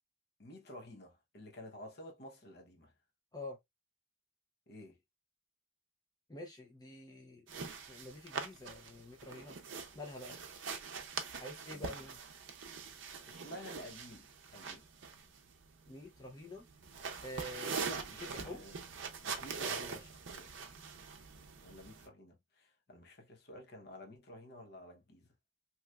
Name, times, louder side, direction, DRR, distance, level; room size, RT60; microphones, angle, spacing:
voice 1, 0.4-2.9 4.7-5.0 11.7-11.9 13.3-14.9 17.8-18.8 19.2-20.6 21.6-25.3, left 1 dB, 55° left, 0.8 m, -51 dB
voice 2, 6.3-9.6 9.9-10.4 11.4-12.2 15.9-16.7 17.2-17.8 18.3-18.6, left 1 dB, 20° left, 0.5 m, -47 dB
sound 1, 7.5-22.1, right 5 dB, 70° right, 0.5 m, -43 dB
3.3 x 2.9 x 2.3 m
head